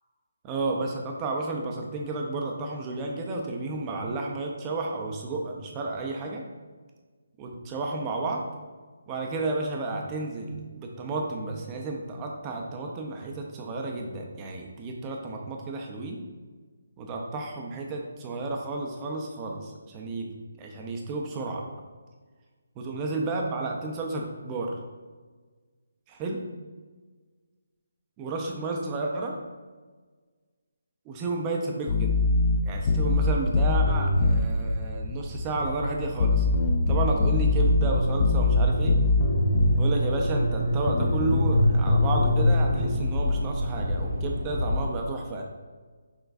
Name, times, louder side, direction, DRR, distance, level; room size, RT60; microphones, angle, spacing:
voice 1, 0.4-6.4 7.4-8.4 9.1-16.2 17.0-20.3 20.6-21.6 22.8-24.8 26.1-26.4 28.2-29.4 31.1-32.1 32.6-36.5 36.9-39.0 39.8-45.4, right 3 dB, 20° right, 0 dB, 0.5 m, -32 dB
sound 1, 31.9-34.5 36.2-39.8 40.9-42.5, left 3 dB, 40° left, 0.4 m, -23 dB
sound 2, 32.6-44.8, left 1 dB, 75° right, 1.4 m, -30 dB
sound 3, 37.1-43.0, right 1 dB, 90° left, 0.7 m, -29 dB
6.1 x 2.2 x 2.5 m, 1.4 s
figure-of-eight pair, 155°, 0 cm